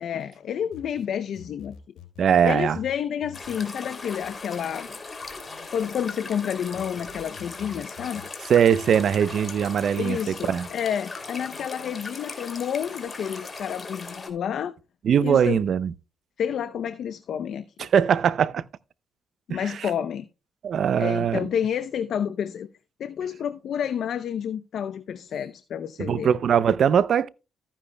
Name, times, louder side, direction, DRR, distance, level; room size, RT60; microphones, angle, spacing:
voice 1, 0.0-1.8 2.4-4.9 5.7-8.2 10.0-14.7 15.2-15.6 16.4-17.6 19.5-20.3 21.0-22.7 23.0-26.3, left 8 dB, 65° left, 0.6 m, -29 dB
sound 1, 0.7-2.3 2.7-4.2 4.7-6.1 6.7-8.3 8.7-10.2 10.7-12.1, left 9 dB, 90° left, 3.4 m, -49 dB
voice 2, 2.2-2.8 8.5-10.7 15.0-15.9 17.8-18.6 19.5-19.9 20.6-21.5 26.0-27.3, right 8 dB, 60° right, 0.5 m, -21 dB
sound 2, 3.3-14.3, left 3 dB, 30° left, 2.8 m, -39 dB
14.0 x 10.0 x 2.2 m
cardioid pair, 90°, 0 cm